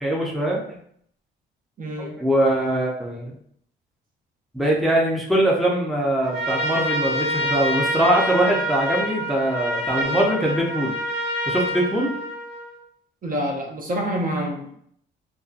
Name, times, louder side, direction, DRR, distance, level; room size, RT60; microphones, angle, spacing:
voice 1, 0.0-0.6 2.0-3.3 4.5-10.9 11.5-12.1, right 1 dB, ahead, -3 dB, 0.5 m, -22 dB
voice 2, 1.8-2.1 13.2-14.8, equal, 45° right, 0 dB, 0.6 m, -27 dB
Trumpet, 6.2-12.8, equal, 65° right, 1.1 m, -26 dB
2.6 x 2.2 x 2.4 m, 0.66 s
cardioid pair, 90°, 20 cm